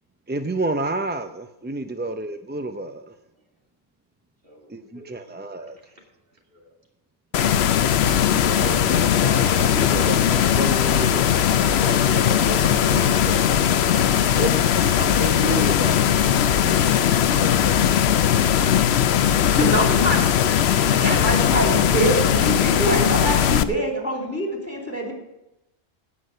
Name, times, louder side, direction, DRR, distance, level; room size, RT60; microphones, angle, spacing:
voice 1, 0.3-3.0 4.7-4.8 5.1-5.7 8.3-13.7 14.1-16.0 16.6-16.7 17.4-18.0, right 2 dB, 15° right, 7 dB, 0.3 m, -31 dB
voice 2, 4.4-5.1 5.6-5.8 6.5-6.7 14.2-14.4 20.2-20.4 21.4-21.7 24.3-24.4, equal, 60° right, 0 dB, 2.8 m, -48 dB
sound 1, 7.3-23.6, left 9 dB, 80° left, 0.9 m, -19 dB
voice 3, 19.5-20.3 20.9-25.1, equal, 15° left, -1 dB, 2.7 m, -24 dB
17.5 x 5.9 x 6.5 m, 0.91 s
omnidirectional pair, 1.1 m